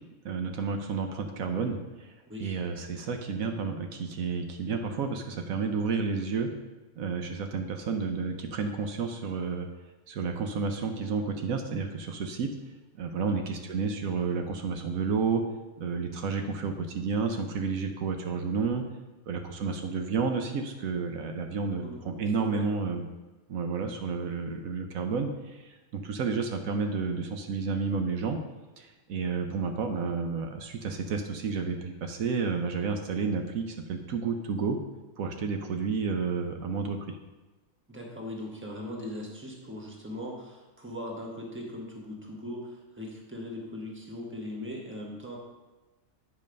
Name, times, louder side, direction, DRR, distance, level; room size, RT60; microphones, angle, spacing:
voice 1, 0.2-2.1 2.4-6.5 7.0-9.7 10.1-12.5 13.0-15.4 15.8-18.8 19.3-23.1 23.5-28.4 28.8-34.8 35.2-37.2, right 5 dB, 75° right, 5 dB, 1.2 m, -31 dB
voice 2, 37.9-45.4, left 1 dB, 10° right, -1 dB, 1.4 m, -39 dB
8.9 x 5.3 x 5.2 m, 1.1 s
omnidirectional pair, 1.5 m